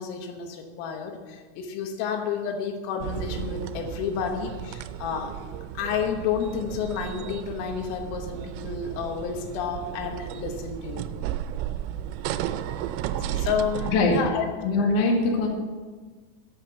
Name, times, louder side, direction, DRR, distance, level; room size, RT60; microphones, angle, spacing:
voice 1, 0.0-5.4 5.8-11.1 13.4-14.5, left 7 dB, 85° left, 4 dB, 3.9 m, -30 dB
sound 1, 3.0-14.2, right 11 dB, 90° right, 3.3 m, -34 dB
voice 2, 13.8-14.2 14.6-15.5, left 3 dB, 55° left, 0 dB, 2.5 m, -22 dB
11.5 x 8.1 x 6.9 m, 1.4 s
omnidirectional pair, 5.8 m